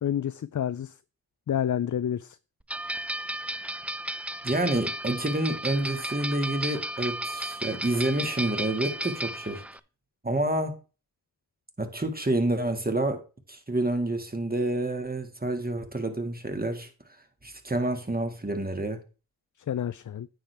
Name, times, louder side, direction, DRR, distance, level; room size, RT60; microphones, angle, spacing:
voice 1, 0.0-0.9 1.5-2.4 19.7-20.3, left 9 dB, 50° left, 0.5 m, -29 dB
sound 1, 2.7-9.8, right 1 dB, 5° right, 0.4 m, -34 dB
voice 2, 4.4-9.6 10.2-10.8 11.8-13.2 13.5-16.9 17.4-19.0, right 1 dB, 25° right, 2.1 m, -28 dB
9.2 x 6.4 x 3.5 m
cardioid pair, 40°, 39 cm